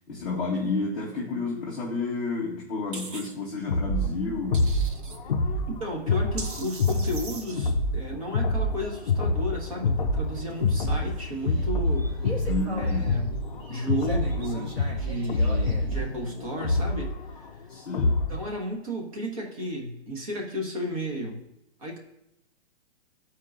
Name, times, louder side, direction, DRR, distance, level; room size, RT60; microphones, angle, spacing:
voice 1, 0.1-4.7 12.5-13.2 17.7-18.2, left 3 dB, ahead, -19 dB, 0.6 m, -31 dB
sound 1, 2.9-3.3 4.5-5.2 6.4-7.6, right 4 dB, 50° right, 0.8 m, -40 dB
sound 2, 3.7-18.5, left 2 dB, 45° left, 0.5 m, -27 dB
voice 2, 5.7-12.4 12.8-13.3 13.7-17.6 18.3-21.4 21.8-22.0, equal, 30° right, 0 dB, 1.1 m, -33 dB
sound 3, 10.3-17.1, equal, 70° right, 2.5 m, -40 dB
12.5 x 4.5 x 2.5 m, 0.88 s
hypercardioid pair, 175°, 33 cm